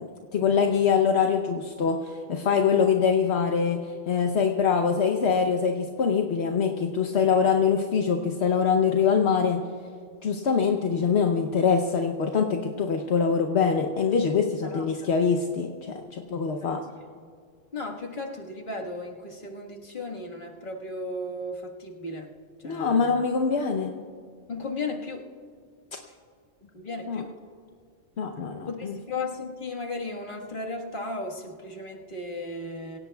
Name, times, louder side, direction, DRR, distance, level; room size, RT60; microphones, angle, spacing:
voice 1, 0.0-9.6 10.2-16.8 22.6-24.0 25.9-26.0 27.1-27.2 28.2-29.0, left 6 dB, 70° left, 4 dB, 1.1 m, -24 dB
voice 2, 14.6-15.1 16.6-16.7 17.7-22.3 22.6-23.2 24.5-25.3 26.6-27.3 28.7-33.0, left 2 dB, 45° left, -1 dB, 1.7 m, -35 dB
26.0 x 17.0 x 2.3 m, 2.1 s
omnidirectional pair, 1.2 m